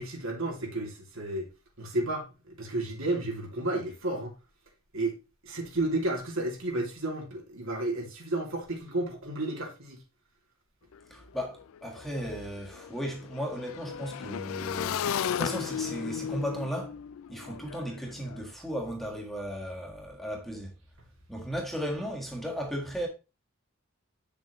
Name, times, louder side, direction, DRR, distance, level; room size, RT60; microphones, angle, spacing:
voice 1, 0.0-1.5 1.8-4.3 4.9-5.1 5.4-10.0, right 2 dB, 70° right, 2.9 m, -32 dB
Motorcycle / Engine, 10.9-11.0 11.3-18.4, left 8 dB, 75° left, 0.4 m, -35 dB
voice 2, 11.1-17.0 17.3-20.7 21.3-23.1, equal, ahead, 1.6 m, -36 dB
8.6 x 6.8 x 3.1 m
head